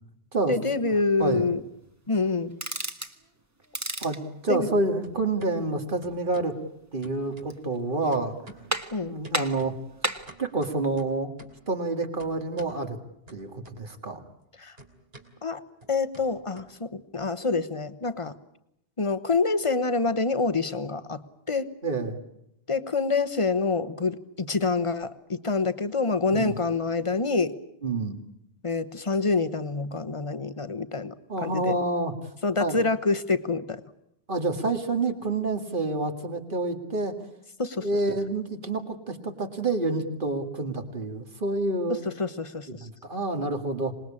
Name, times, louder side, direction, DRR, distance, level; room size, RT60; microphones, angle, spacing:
voice 1, 0.5-1.6 2.1-2.6 4.5-4.7 8.9-9.1 14.6-14.8 15.4-15.6 15.9-18.3 19.0-21.2 21.5-21.7 22.7-27.5 28.6-31.1 31.4-31.7 32.4-33.8 37.6-37.9 41.9-42.9, left 4 dB, 30° left, 12 dB, 1.2 m, -26 dB
sound 1, 1.9-2.9 3.2-4.8 5.0-5.5 6.0-6.6 7.0-7.8 8.1-8.8 9.2-11.7 12.2-12.8 13.3-14.1 14.4-17.2, right 2 dB, 75° right, 3.2 m, -51 dB
sound 2, 2.5-3.2 3.6-4.2 7.2-7.8 8.2-8.3 8.7-9.1 9.3-10.3, right 1 dB, 15° right, 1.3 m, -32 dB
voice 2, 4.0-6.5 6.9-8.4 9.0-9.8 10.4-11.3 11.7-13.0 13.3-14.2 21.8-22.2 26.3-26.5 27.8-28.2 31.3-32.1 32.6-32.8 34.3-37.2 37.8-42.0 42.8-43.9, right 2 dB, 55° right, 6 dB, 2.4 m, -28 dB
26.5 x 20.5 x 8.6 m, 0.79 s
omnidirectional pair, 1.0 m